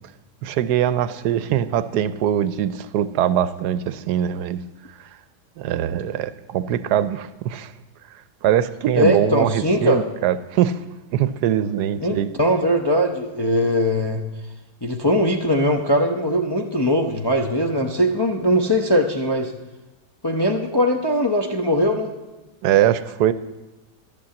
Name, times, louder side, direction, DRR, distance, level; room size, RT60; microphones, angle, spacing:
voice 1, 0.4-4.6 5.0-5.1 5.6-7.7 8.4-10.8 11.1-12.3 22.6-23.3, right 10 dB, 80° right, 14 dB, 1.1 m, -22 dB
voice 2, 9.0-10.0 12.0-14.2 14.8-19.5 20.2-22.1, equal, 25° left, 2 dB, 0.5 m, -20 dB
12.5 x 8.5 x 7.6 m, 1.1 s
omnidirectional pair, 1.7 m